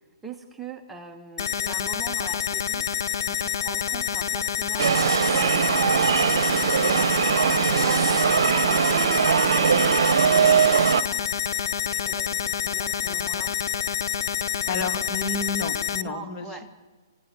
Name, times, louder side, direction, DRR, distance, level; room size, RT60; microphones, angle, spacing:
voice 1, 0.2-2.9 3.3-6.2 8.5-11.3 12.0-13.6 16.0-16.7, right 3 dB, 5° right, 3 dB, 1.2 m, -42 dB
sound 1, 1.4-16.0, left 9 dB, 70° left, 0.8 m, -27 dB
sound 2, 4.8-11.0, right 7 dB, 70° right, 0.9 m, -21 dB
voice 2, 14.7-16.5, left 4 dB, 30° left, 5 dB, 2.8 m, -31 dB
29.5 x 16.5 x 7.6 m, 1.4 s
hypercardioid pair, 145°, 2 cm